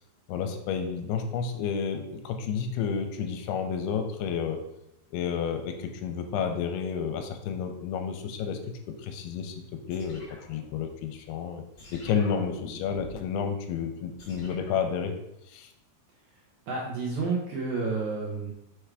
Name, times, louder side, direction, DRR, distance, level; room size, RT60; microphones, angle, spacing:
voice 1, 0.3-4.6 5.1-8.6 9.0-9.6 9.9-10.2 10.5-11.6 11.9-15.1 15.5-15.7, left 7 dB, 85° left, 6 dB, 2.6 m, -30 dB
sound 1, 9.9-11.2 11.8-13.3 14.2-14.9, left 2 dB, 35° left, 1.2 m, -48 dB
voice 2, 16.7-18.5, right 4 dB, 75° right, -4 dB, 1.7 m, -30 dB
6.2 x 3.4 x 4.7 m, 0.82 s
omnidirectional pair, 4.7 m